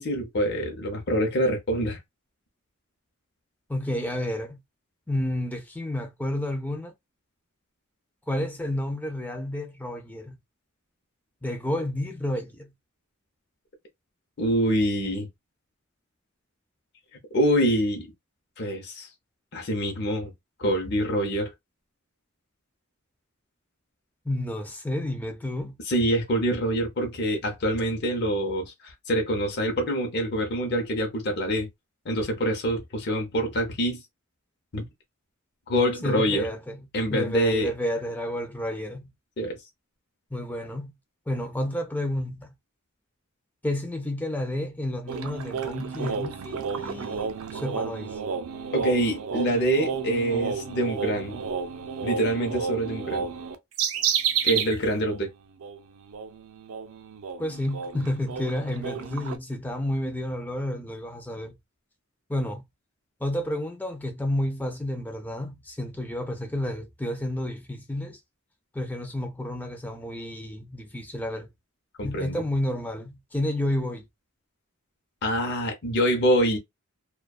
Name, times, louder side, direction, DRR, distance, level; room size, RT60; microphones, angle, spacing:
voice 1, 0.0-2.0 14.4-15.3 17.3-18.1 18.6-19.1 19.5-20.3 20.6-21.5 25.9-31.7 32.0-34.0 34.7-34.9 35.7-36.5 36.9-37.7 39.4-39.6 48.7-51.4 52.0-53.3 54.4-55.3 72.0-72.4 75.2-76.6, right 1 dB, 50° left, 0.7 m, -25 dB
voice 2, 3.7-4.6 5.1-6.9 8.3-10.4 11.4-12.7 24.3-25.8 36.0-39.1 40.3-40.9 41.3-42.5 43.6-48.2 57.4-61.6 62.3-62.6 63.2-68.2 68.7-71.5 72.0-74.1, left 1 dB, 10° left, 0.4 m, -30 dB
sound 1, 45.1-54.8 55.1-55.2 55.6-59.4, right 6 dB, 80° right, 0.4 m, -31 dB
2.5 x 2.2 x 2.3 m
head